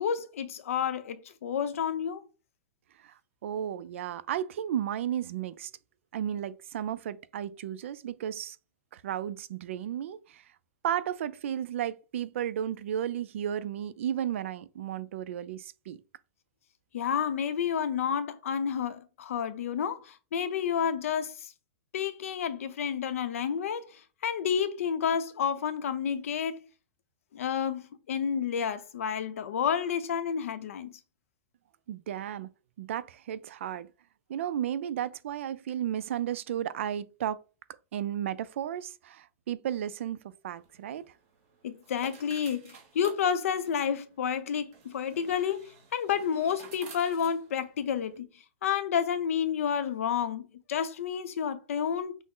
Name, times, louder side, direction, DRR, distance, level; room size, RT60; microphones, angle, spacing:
voice 1, 0.0-2.3 16.9-21.5 21.9-26.6 27.3-30.9 41.6-48.3 48.6-52.2, left 8 dB, 80° left, 0.6 m, -30 dB
voice 2, 3.0-5.7 6.1-8.6 8.9-10.4 10.8-16.0 31.9-32.5 32.8-33.9 34.3-37.4 37.9-41.1, right 10 dB, 65° right, 0.4 m, -34 dB
sound 1, 40.5-48.2, right 5 dB, 30° right, 1.0 m, -53 dB
6.1 x 2.0 x 3.7 m
supercardioid pair, 175°, 7 cm